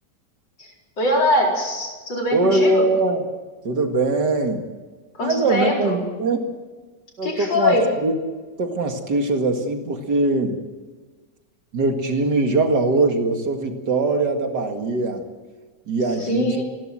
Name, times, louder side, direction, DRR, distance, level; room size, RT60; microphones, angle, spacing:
voice 1, 1.0-2.9 5.2-5.9 7.2-7.8 16.2-16.6, left 1 dB, 90° left, -1 dB, 5.1 m, -22 dB
voice 2, 2.3-3.2 3.6-4.7 5.2-6.4 7.2-7.7 8.0-8.1 8.6-10.6 11.7-15.2 15.9-16.6, right 2 dB, 70° right, 4 dB, 2.7 m, -21 dB
27.5 x 12.5 x 7.6 m, 1.4 s
omnidirectional pair, 1.9 m